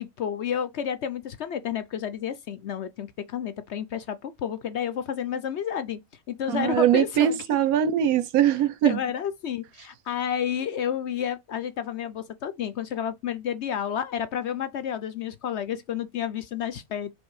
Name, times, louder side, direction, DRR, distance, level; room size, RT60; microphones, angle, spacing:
voice 1, 0.0-6.0 6.3-7.4 8.8-17.1, left 9 dB, 60° left, 0.8 m, -30 dB
voice 2, 6.5-9.0, right 10 dB, 80° right, 1.2 m, -22 dB
5.3 x 3.7 x 4.7 m
omnidirectional pair, 1.5 m